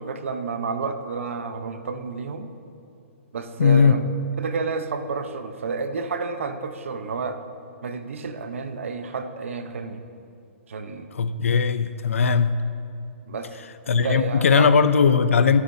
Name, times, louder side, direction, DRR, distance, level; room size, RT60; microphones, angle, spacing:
voice 1, 0.0-2.5 3.3-4.0 4.4-7.4 7.8-10.0 10.7-11.1 13.2-13.5 13.9-14.7, right 4 dB, 75° right, 1.0 m, -30 dB
voice 2, 3.6-4.0 11.1-12.6 13.9-15.6, left 6 dB, 85° left, 0.7 m, -18 dB
24.5 x 8.3 x 2.8 m
hypercardioid pair, 140°, 7 cm